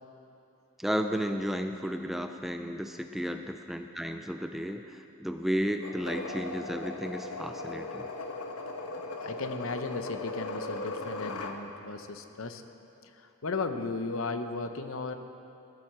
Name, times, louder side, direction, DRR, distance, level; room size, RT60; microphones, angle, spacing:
voice 1, 0.8-8.1, equal, ahead, 6 dB, 0.3 m, -33 dB
sound 1, 5.8-11.6, left 3 dB, 85° left, 1.0 m, -38 dB
voice 2, 9.2-12.6 13.0-15.1, left 3 dB, 65° left, 8 dB, 0.7 m, -35 dB
14.5 x 7.7 x 7.5 m, 2.8 s
head